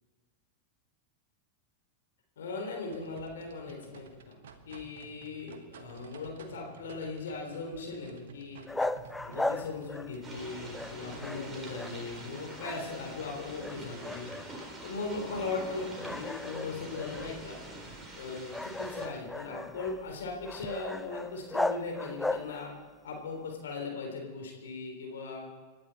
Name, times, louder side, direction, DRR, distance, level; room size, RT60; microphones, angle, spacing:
voice 1, 2.4-8.6 9.2-14.3 14.8-17.6 18.2-22.7 23.0-25.5, left 3 dB, 60° left, 1 dB, 3.6 m, -39 dB
sound 1, 2.9-12.6, right 5 dB, 60° right, 1.5 m, -53 dB
sound 2, 8.7-10.4 10.7-12.3 12.5-13.3 13.6-14.8 15.2-15.4 16.0-22.8, left 2 dB, 5° left, 0.5 m, -37 dB
sound 3, 10.2-19.1, right 1 dB, 10° right, 4.1 m, -45 dB
28.0 x 12.0 x 4.3 m, 1.5 s
figure-of-eight pair, 90°, 0 cm